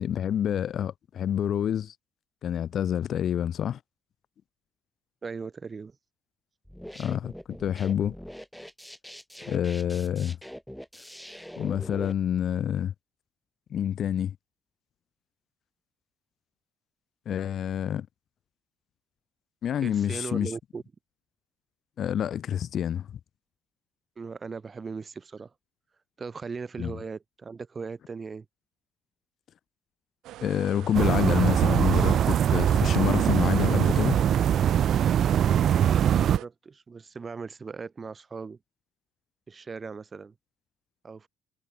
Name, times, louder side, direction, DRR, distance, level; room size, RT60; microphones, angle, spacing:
voice 1, 0.0-1.9 2.4-3.8 6.9-8.1 9.5-10.4 11.6-12.9 13.7-14.3 17.2-18.1 19.6-20.5 22.0-23.1 26.8-26.9 30.4-34.2, left 9 dB, 55° left, 3.3 m, -27 dB
voice 2, 5.2-6.0 19.8-20.8 24.2-25.5 26.2-28.5 35.8-38.6 39.5-40.3 41.0-41.3, right 5 dB, 30° right, 6.2 m, -38 dB
sound 1, 6.7-12.1, equal, ahead, 6.3 m, -43 dB
sound 2, 30.2-36.5, right 14 dB, 75° right, 2.5 m, -42 dB
sound 3, 30.9-36.4, right 9 dB, 55° right, 0.6 m, -22 dB
cardioid pair, 105°, 0 cm